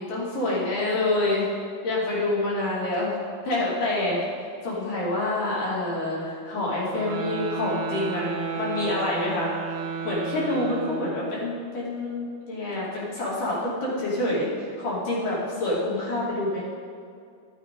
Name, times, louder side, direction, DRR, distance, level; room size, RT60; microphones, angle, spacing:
voice 1, 0.0-1.5 1.8-3.2 3.4-4.3 4.6-9.5 10.0-16.7, left 2 dB, 65° left, -7 dB, 4.2 m, -27 dB
sound 1, 6.8-11.4, right 5 dB, 65° right, 2.2 m, -32 dB
12.0 x 12.0 x 3.8 m, 2.3 s
omnidirectional pair, 4.2 m